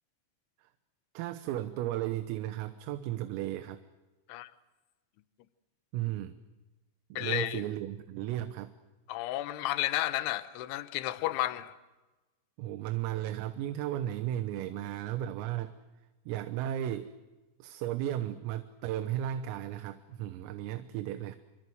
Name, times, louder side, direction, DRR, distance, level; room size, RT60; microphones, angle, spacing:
voice 1, 1.2-3.8 5.9-6.4 7.1-8.7 12.6-15.8 16.3-17.1 17.6-21.4, right 12 dB, 85° right, 3.7 m, -35 dB
voice 2, 7.2-7.7 9.1-11.7, left 15 dB, 75° left, 3.2 m, -32 dB
28.0 x 25.0 x 7.8 m
omnidirectional pair, 5.9 m